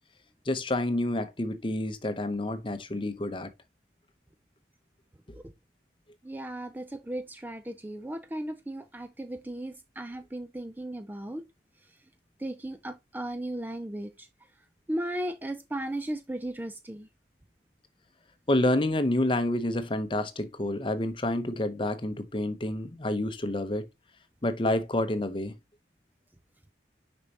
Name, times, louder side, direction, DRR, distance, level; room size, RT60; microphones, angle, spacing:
voice 1, 0.4-3.5 18.5-23.9 24.4-25.5, left 1 dB, 30° left, 0.8 m, -28 dB
voice 2, 6.2-11.4 12.4-14.3 14.9-17.1, right 1 dB, 10° right, 0.4 m, -36 dB
6.6 x 5.3 x 2.8 m
head